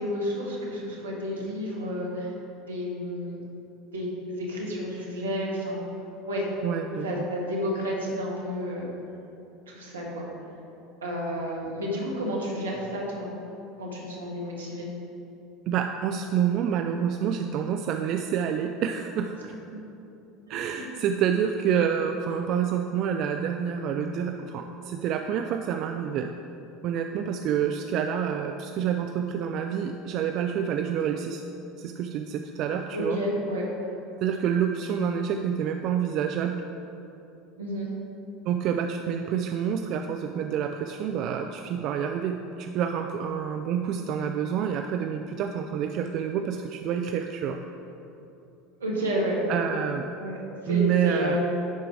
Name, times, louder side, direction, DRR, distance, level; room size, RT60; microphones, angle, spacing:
voice 1, 0.0-3.4 3.9-5.8 6.2-6.5 7.0-8.9 9.7-10.3 11.0-13.3 13.8-14.9 20.5-20.6 32.9-33.7 37.6-37.9 48.8-49.4 50.2-51.4, equal, 85° right, -3 dB, 1.6 m, -31 dB
voice 2, 6.6-7.3 15.7-19.5 20.5-26.3 26.8-31.4 31.8-33.2 34.2-36.6 38.5-47.6 49.5-50.1 50.7-51.4, right 8 dB, 55° right, 5 dB, 0.4 m, -28 dB
11.0 x 4.5 x 4.9 m, 2.8 s
hypercardioid pair, 75°, 0 cm